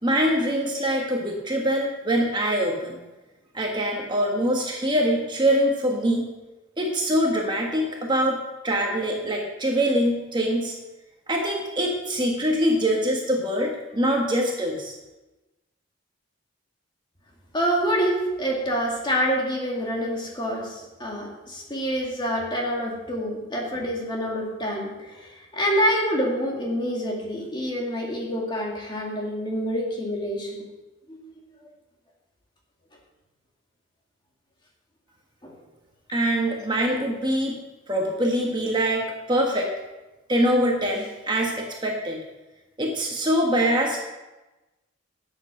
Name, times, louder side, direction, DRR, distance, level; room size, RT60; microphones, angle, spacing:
voice 1, 0.0-3.0 3.5-6.3 6.8-10.7 11.3-14.9 36.1-37.6 37.9-39.7 40.3-42.2 42.8-44.0, equal, 20° right, 0 dB, 1.5 m, -24 dB
voice 2, 17.5-30.6 31.1-31.3 35.4-35.6, equal, 20° left, -1 dB, 2.3 m, -27 dB
11.5 x 8.1 x 6.4 m, 1.1 s
head